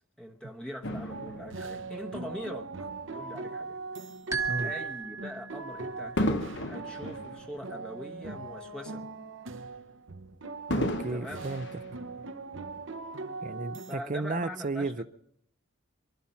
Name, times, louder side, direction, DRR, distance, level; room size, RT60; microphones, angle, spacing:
voice 1, 0.2-3.8 4.6-9.0 11.1-11.5 13.9-15.0, equal, 5° left, 1.0 m, -42 dB
Fireworks, 0.8-3.4 4.1-4.3 6.2-8.7 9.0-9.1 10.7-12.6 13.3-13.4, left 1 dB, 55° left, 1.0 m, -35 dB
sound 1, 1.1-13.9, right 3 dB, 60° right, 0.9 m, -40 dB
sound 2, 4.3-5.9, right 5 dB, 15° right, 1.2 m, -34 dB
voice 2, 10.8-11.8 13.4-15.0, right 3 dB, 35° right, 0.6 m, -33 dB
23.5 x 12.0 x 4.3 m
head